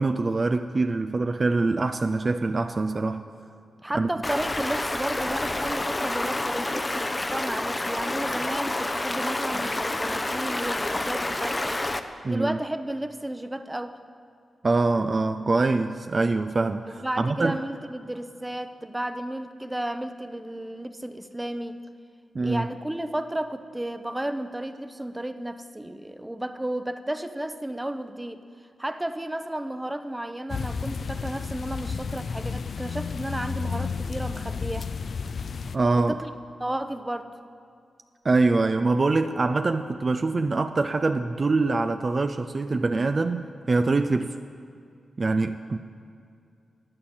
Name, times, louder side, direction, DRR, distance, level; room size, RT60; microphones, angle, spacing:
voice 1, 0.0-3.2 3.9-4.1 12.2-12.6 14.6-17.6 22.3-22.7 35.7-36.1 38.2-44.4 45.2-45.8, right 3 dB, 45° right, 8 dB, 0.4 m, -24 dB
voice 2, 3.8-11.8 12.2-14.0 16.9-21.8 22.4-28.4 28.8-34.9 35.9-36.3 36.6-37.3, right 1 dB, 15° right, 9 dB, 0.7 m, -33 dB
Stream, 4.2-12.0, left 2 dB, 25° left, 0.7 m, -28 dB
sound 1, 30.5-35.8, left 5 dB, 65° left, 0.4 m, -32 dB
15.0 x 9.7 x 4.3 m, 2.4 s
cardioid pair, 55°, 0 cm